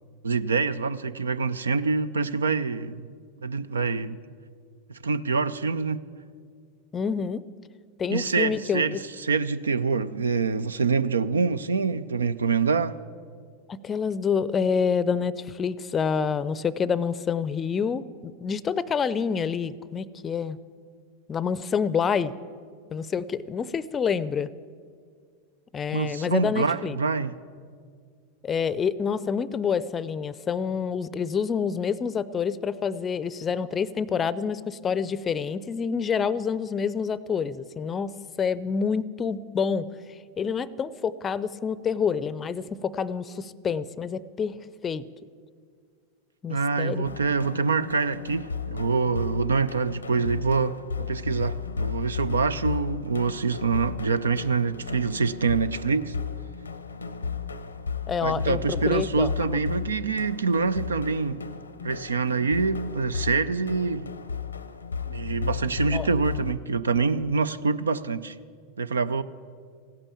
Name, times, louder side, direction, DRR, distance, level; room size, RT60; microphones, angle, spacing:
voice 1, 0.2-3.1 3.4-4.2 5.0-6.0 8.1-13.0 25.9-27.3 46.5-56.1 58.2-61.4 61.8-64.1 65.1-68.3 68.8-69.2, right 4 dB, 80° right, 0.5 m, -25 dB
voice 2, 6.9-7.4 8.0-9.0 13.7-20.6 21.3-22.3 22.9-24.5 25.7-27.0 28.4-38.1 38.4-39.9 40.4-44.6 44.8-45.0 46.4-47.2 58.1-59.6 65.9-66.1, left 6 dB, 25° left, 0.5 m, -27 dB
sound 1, 47.0-66.5, left 6 dB, 85° left, 0.7 m, -34 dB
16.0 x 8.9 x 8.4 m
figure-of-eight pair, 90°, 0 cm